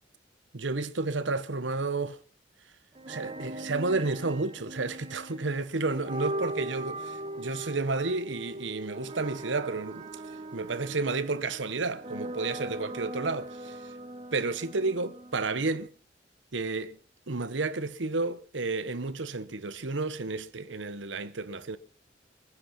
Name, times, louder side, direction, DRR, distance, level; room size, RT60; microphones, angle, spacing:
voice 1, 0.5-2.2 3.1-10.1 10.5-13.8 14.3-15.9 16.5-17.0 17.3-21.8, right 3 dB, 85° right, 1.0 m, -31 dB
sound 1, 2.9-15.9, right 1 dB, 30° right, 1.3 m, -40 dB
22.5 x 9.5 x 5.6 m
head